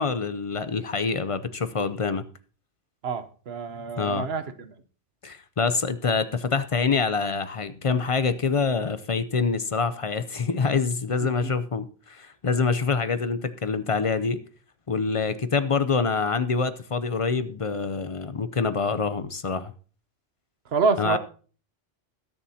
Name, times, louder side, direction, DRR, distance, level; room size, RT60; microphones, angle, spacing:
voice 1, 0.0-2.2 4.0-4.3 5.2-14.4 14.9-19.7 21.0-21.2, left 5 dB, 40° left, 12 dB, 0.5 m, -26 dB
voice 2, 3.0-4.7 20.7-21.2, right 4 dB, 60° right, 10 dB, 1.1 m, -27 dB
21.0 x 7.2 x 2.8 m, 0.39 s
omnidirectional pair, 1.2 m